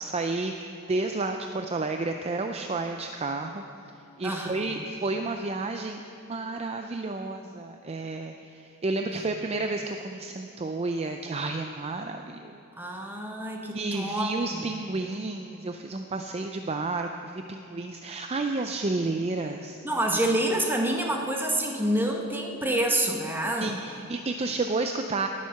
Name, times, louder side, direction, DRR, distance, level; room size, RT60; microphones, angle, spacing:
voice 1, 0.0-3.6 4.2-12.6 13.7-19.8 23.6-25.3, right 3 dB, 30° right, 5 dB, 0.4 m, -31 dB
voice 2, 4.2-4.8 9.1-9.3 12.8-14.7 19.8-23.7, right 1 dB, 10° right, 1 dB, 1.2 m, -28 dB
19.0 x 7.5 x 5.8 m, 2.8 s
head